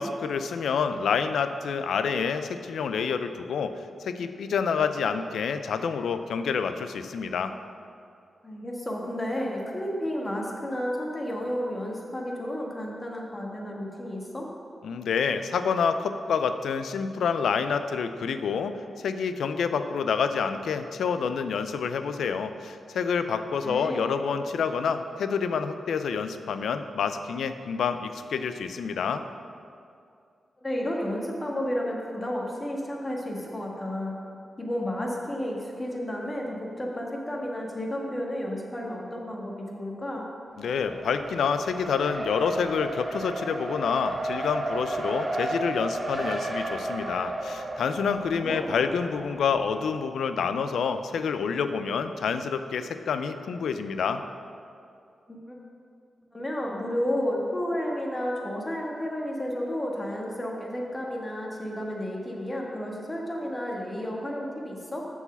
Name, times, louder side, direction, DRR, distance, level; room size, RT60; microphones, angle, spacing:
voice 1, 0.0-3.7 4.0-7.5 14.8-29.2 40.6-54.2, left 6 dB, 80° left, 9 dB, 0.4 m, -28 dB
voice 2, 8.4-14.5 23.6-24.1 30.6-34.2 34.6-40.3 48.4-48.7 55.3-55.6 56.3-65.1, left 1 dB, 25° left, -1 dB, 1.7 m, -32 dB
Race car auto racing, 40.6-49.7, right 1 dB, 35° right, 1.0 m, -33 dB
6.8 x 4.7 x 6.9 m, 2.4 s
supercardioid pair, 40°, 0 cm